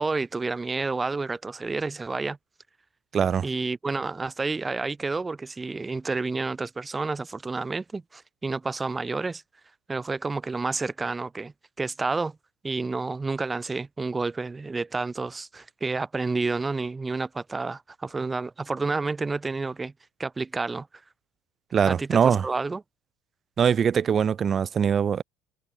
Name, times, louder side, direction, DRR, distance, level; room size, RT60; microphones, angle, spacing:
voice 1, 0.0-2.4 3.4-9.4 9.9-12.4 12.6-19.9 20.2-20.9 21.9-22.8, right 3 dB, 15° right, 4.1 m, -30 dB
voice 2, 3.1-3.5 21.7-22.4 23.6-25.2, right 7 dB, 35° right, 0.5 m, -22 dB
supercardioid pair, 120°, 0 cm